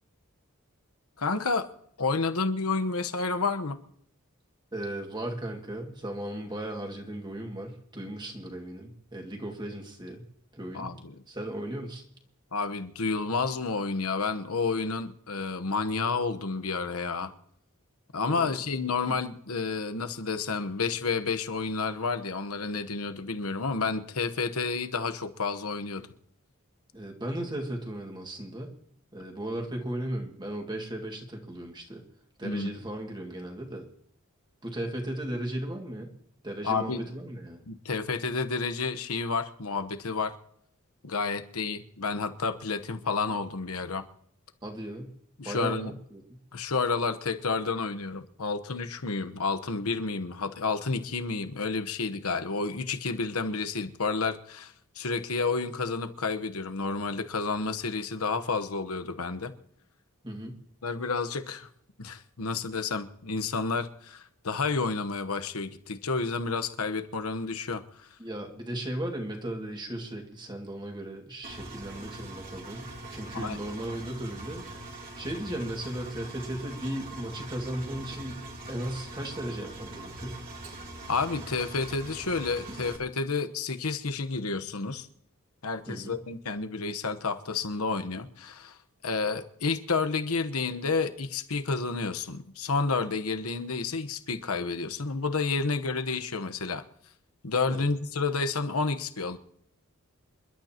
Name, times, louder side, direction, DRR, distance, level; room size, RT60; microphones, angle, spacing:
voice 1, 1.2-1.7 2.0-3.8 10.7-11.1 12.5-17.3 18.1-26.1 32.4-32.7 36.6-37.0 37.7-40.3 41.0-44.0 45.4-45.9 46.5-59.5 60.8-61.7 62.0-68.1 73.3-73.6 81.1-85.1 85.6-88.8 89.0-96.8 97.4-99.4, left 4 dB, 85° left, 8 dB, 1.1 m, -30 dB
voice 2, 4.7-10.2 10.5-10.9 11.3-12.0 18.3-18.6 19.1-19.2 26.9-28.7 29.1-32.0 32.4-33.9 34.6-36.1 36.4-37.6 44.6-45.1 45.4-46.2 60.2-60.5 68.2-74.6 74.9-78.4 78.7-80.4 82.8-82.9 85.9-86.2 97.7-97.9, right 1 dB, 20° right, 2 dB, 2.1 m, -36 dB
Engine, 71.4-83.0, right 2 dB, 40° right, 3.0 m, -42 dB
28.0 x 12.0 x 2.9 m, 0.68 s
head